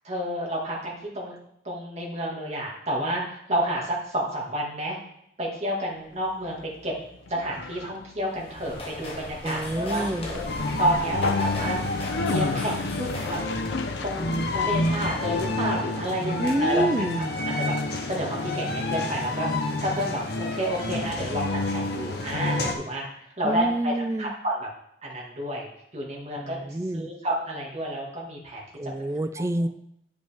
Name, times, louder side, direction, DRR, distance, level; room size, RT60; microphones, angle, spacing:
voice 1, 0.0-1.3 1.6-5.0 5.4-6.9 7.3-11.8 12.3-13.4 14.0-16.8 17.1-17.2 17.6-19.5 19.8-24.7 25.0-25.7 25.9-26.6 26.9-28.6, right 1 dB, 35° right, -3 dB, 2.1 m, -30 dB
Conversation, 6.1-15.6, left 3 dB, 85° left, 0.6 m, -35 dB
sound 1, 8.2-13.6, left 1 dB, 30° left, 1.2 m, -39 dB
voice 2, 9.4-10.3 16.4-17.4 23.4-24.3 26.4-27.1 28.8-29.7, right 1 dB, 15° right, 10 dB, 0.4 m, -27 dB
sound 2, 10.5-22.7, left 2 dB, 60° left, 0.9 m, -29 dB
9.9 x 5.1 x 3.5 m, 0.76 s
head